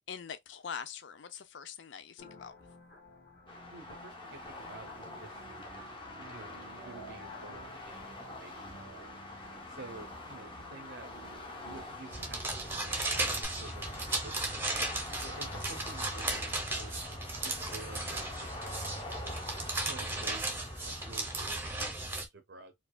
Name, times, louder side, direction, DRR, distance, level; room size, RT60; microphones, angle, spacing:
voice 1, 0.1-2.5 15.5-15.8, left 7 dB, 70° left, 0.5 m, -43 dB
sound 1, 2.2-13.5, equal, 50° left, 2.0 m, -51 dB
sound 2, 3.5-21.9, left 2 dB, 25° left, 0.7 m, -46 dB
voice 2, 3.7-5.4 6.1-9.1 9.7-11.1 11.5-14.7 15.2-19.5 19.8-22.0 22.3-22.7, right 3 dB, 60° right, 0.6 m, -51 dB
sound 3, 12.1-22.2, right 2 dB, 10° right, 0.6 m, -35 dB
4.5 x 2.3 x 2.2 m
head